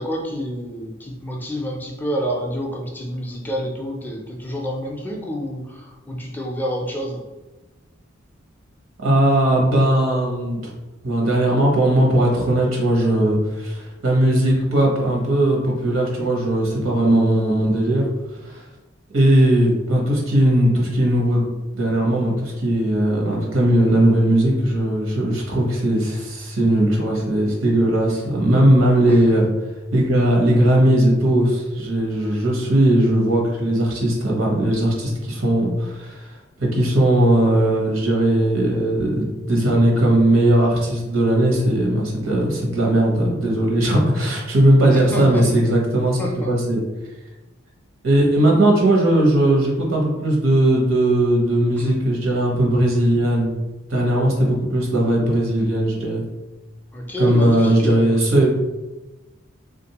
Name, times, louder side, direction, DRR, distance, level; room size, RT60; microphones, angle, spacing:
voice 1, 0.0-7.2 29.1-29.2 44.9-45.4 46.2-46.5 51.8-52.0 56.9-58.2, equal, 10° left, -1 dB, 0.4 m, -28 dB
voice 2, 9.0-10.7 11.0-18.0 18.4-18.6 19.1-21.5 21.7-29.5 29.9-46.8 48.0-56.2 57.2-58.5, right 1 dB, 85° right, -2 dB, 1.0 m, -18 dB
3.5 x 2.5 x 2.8 m, 1.1 s
head